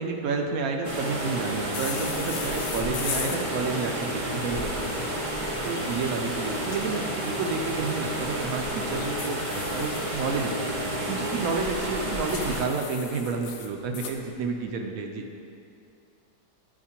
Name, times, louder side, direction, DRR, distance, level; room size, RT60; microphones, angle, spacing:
voice 1, 0.0-5.1 5.6-15.3, right 4 dB, 70° right, 3 dB, 0.9 m, -30 dB
sound 1, 0.8-12.6, right 1 dB, 35° right, 0.5 m, -31 dB
sound 2, 1.7-3.4 5.4-6.8 8.9-10.5 12.3-14.2, left 7 dB, 75° left, 1.2 m, -38 dB
9.6 x 4.5 x 2.9 m, 2.5 s
omnidirectional pair, 1.8 m